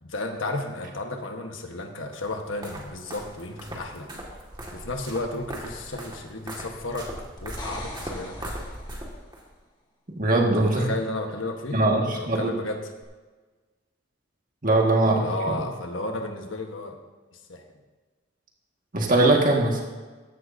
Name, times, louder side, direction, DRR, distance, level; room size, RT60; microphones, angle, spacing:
voice 1, 0.0-4.1 4.7-8.5 10.5-11.8 12.1-12.9 15.0-17.0 17.3-17.6, left 2 dB, 80° left, 4 dB, 1.3 m, -33 dB
sound 1, 2.1-9.4, right 1 dB, 20° right, 1.9 m, -39 dB
sound 2, 7.4-9.3 13.0-13.1, left 1 dB, 20° left, 1.6 m, -41 dB
voice 2, 10.2-10.9 11.7-12.5 14.6-15.2 18.9-19.8, right 2 dB, 45° right, 0 dB, 1.8 m, -20 dB
15.0 x 11.0 x 2.7 m, 1.3 s
head